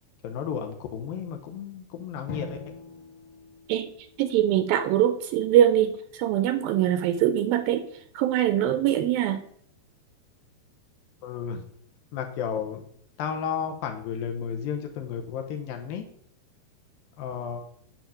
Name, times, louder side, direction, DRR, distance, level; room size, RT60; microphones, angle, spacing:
voice 1, 0.2-2.6 11.2-11.6 12.1-12.8 13.2-16.1 17.2-17.6, left 7 dB, 75° left, 5 dB, 2.5 m, -32 dB
Drum, 2.3-4.8, left 3 dB, 45° left, 2.0 m, -43 dB
voice 2, 4.2-7.9 8.2-9.4, right 11 dB, 80° right, 9 dB, 2.2 m, -23 dB
9.1 x 5.1 x 7.0 m, 0.65 s
omnidirectional pair, 4.6 m